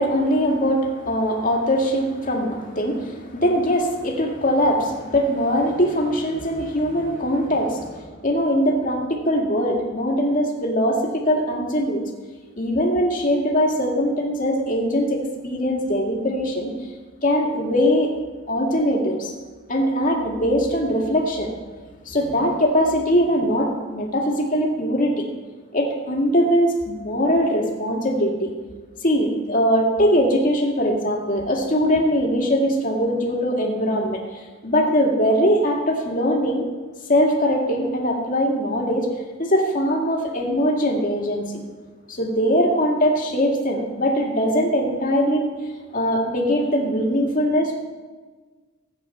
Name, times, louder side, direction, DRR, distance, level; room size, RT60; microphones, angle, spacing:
voice 1, 0.0-12.0 12.6-16.7 17.2-18.1 18.5-19.3 19.7-21.5 22.1-25.2 25.7-28.5 29.0-36.6 37.1-39.1 39.4-41.6 42.1-45.5 45.9-47.8, equal, 40° left, 0 dB, 2.1 m, -21 dB
15.0 x 8.9 x 5.7 m, 1.4 s
head